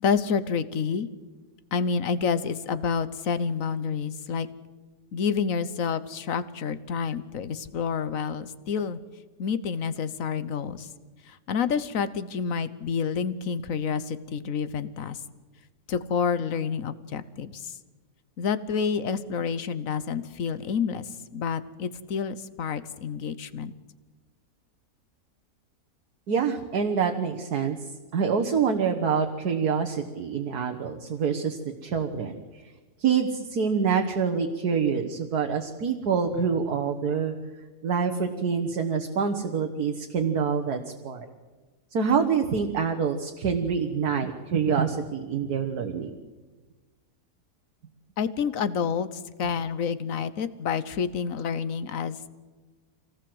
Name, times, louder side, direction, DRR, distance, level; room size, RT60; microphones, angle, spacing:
voice 1, 0.0-1.1 1.7-4.5 5.1-9.0 9.4-10.9 11.3-15.2 15.9-17.7 18.4-23.7 48.2-49.1 49.4-52.3, left 6 dB, 60° left, 13 dB, 1.3 m, -28 dB
voice 2, 26.3-27.8 28.1-32.4 33.0-37.4 37.8-40.8 41.0-41.3 41.9-46.1, right 6 dB, 70° right, 4 dB, 1.7 m, -26 dB
25.5 x 18.0 x 7.8 m, 1.3 s
omnidirectional pair, 1.7 m